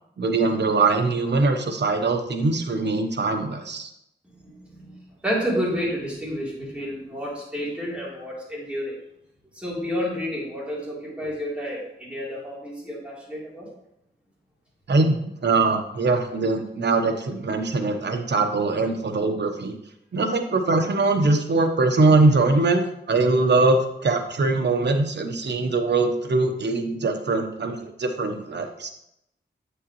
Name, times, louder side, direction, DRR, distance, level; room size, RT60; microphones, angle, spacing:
voice 1, 0.2-3.9 14.9-19.7 20.1-28.9, right 3 dB, 65° right, 6 dB, 0.9 m, -22 dB
voice 2, 4.2-9.0 9.5-13.7, equal, 5° right, -6 dB, 3.3 m, -30 dB
8.8 x 6.5 x 3.1 m, 0.80 s
wide cardioid pair, 90°, 19 cm